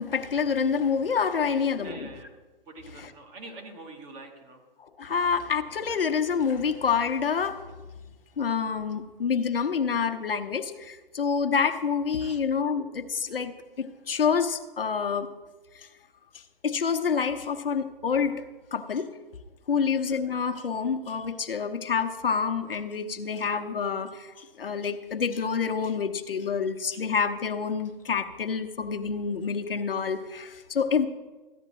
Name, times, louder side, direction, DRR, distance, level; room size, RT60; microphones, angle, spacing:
voice 1, 0.0-2.1 4.8-7.6 8.4-15.3 16.6-18.4 18.7-19.1 19.7-31.1, left 6 dB, 70° left, 8 dB, 0.9 m, -27 dB
voice 2, 1.4-2.4 2.7-4.6 5.1-5.2 12.2-12.4 19.7-20.0, right 2 dB, 20° right, 3 dB, 1.1 m, -45 dB
14.5 x 10.5 x 3.0 m, 1.2 s
figure-of-eight pair, 140°, 29 cm